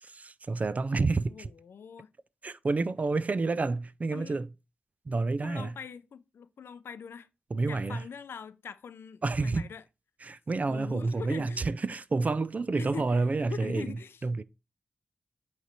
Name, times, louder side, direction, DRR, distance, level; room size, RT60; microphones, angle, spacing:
voice 1, 0.0-1.5 2.4-4.5 5.1-5.7 7.5-8.0 9.2-9.7 10.2-14.0 14.2-14.4, right 3 dB, 40° right, 0.4 m, -29 dB
voice 2, 1.3-2.1 4.1-4.4 5.4-7.3 7.6-9.8 10.7-11.7 12.7-13.1 13.5-14.2, left 6 dB, 85° left, 0.5 m, -43 dB
8.2 x 3.2 x 4.3 m
wide cardioid pair, 95°, 4 cm